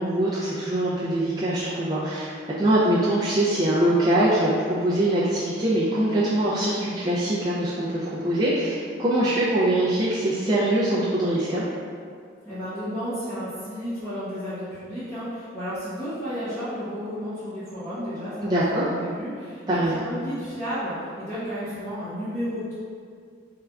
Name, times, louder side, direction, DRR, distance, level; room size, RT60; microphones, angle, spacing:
voice 1, 0.0-2.3 2.6-11.6 18.4-18.8 19.7-20.0, right 1 dB, 20° right, -9 dB, 0.3 m, -23 dB
voice 2, 12.4-22.7, equal, 15° left, -15 dB, 0.8 m, -32 dB
3.6 x 3.2 x 2.3 m, 2.2 s
head